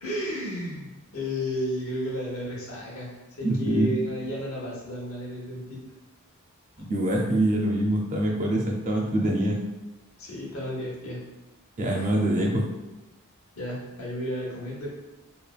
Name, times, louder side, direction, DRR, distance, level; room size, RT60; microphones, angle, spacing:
voice 1, 0.0-3.1 3.4-5.8 10.2-11.2 12.0-12.1 12.4-12.5 13.6-14.9, equal, 75° left, -4 dB, 0.9 m, -33 dB
voice 2, 3.4-3.9 6.8-9.6 11.8-12.6, right 1 dB, 35° right, -1 dB, 0.5 m, -24 dB
3.3 x 2.1 x 2.3 m, 1.0 s
head